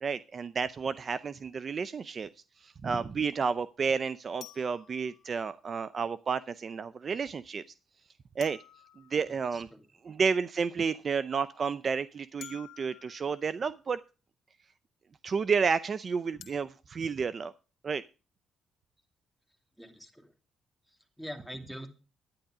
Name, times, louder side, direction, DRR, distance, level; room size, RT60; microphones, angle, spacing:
voice 1, 0.0-2.3 2.6-7.6 8.4-8.6 9.0-9.7 10.1-14.0 15.2-17.5 17.8-18.0, right 5 dB, 45° right, 15 dB, 0.5 m, -31 dB
sound 1, 1.0-1.1 4.4-5.7 8.4-9.8 12.4-13.6 16.4-16.6, left 12 dB, 75° left, 1.6 m, -52 dB
voice 2, 9.5-9.8 19.8-20.3 20.9-21.9, equal, ahead, 6 dB, 2.5 m, -44 dB
10.5 x 10.0 x 4.8 m, 0.32 s
cardioid pair, 90°, 0 cm